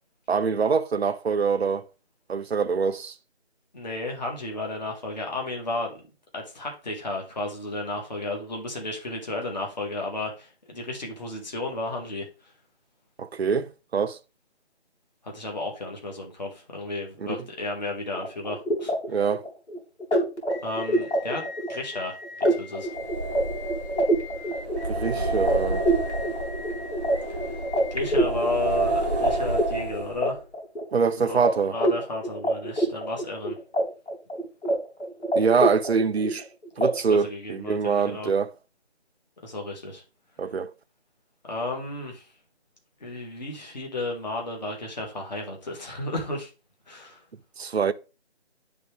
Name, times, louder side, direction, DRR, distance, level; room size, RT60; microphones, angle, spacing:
voice 1, 0.3-1.8 2.3-3.1 13.2-14.2 17.3-17.4 19.1-19.4 24.9-25.8 30.9-31.8 35.3-36.5 36.8-38.5 40.4-40.7 47.6-47.9, right 5 dB, 65° right, 0.6 m, -24 dB
voice 2, 3.7-6.0 6.3-12.3 15.2-18.9 20.6-22.9 24.4-24.6 25.1-25.4 27.9-30.4 31.2-33.6 36.8-38.3 39.4-40.0 41.4-42.3 43.0-46.5 46.9-47.2, left 2 dB, 40° left, 1.8 m, -33 dB
sound 1, 18.1-29.3 29.6-31.1 31.4-31.5 31.8-33.8 34.1-34.7 35.0-36.4 36.8-36.9, right 1 dB, 75° left, 2.8 m, -26 dB
sound 2, 22.8-30.4, right 2 dB, ahead, 1.3 m, -29 dB
10.5 x 3.6 x 3.4 m
figure-of-eight pair, 165°, 34 cm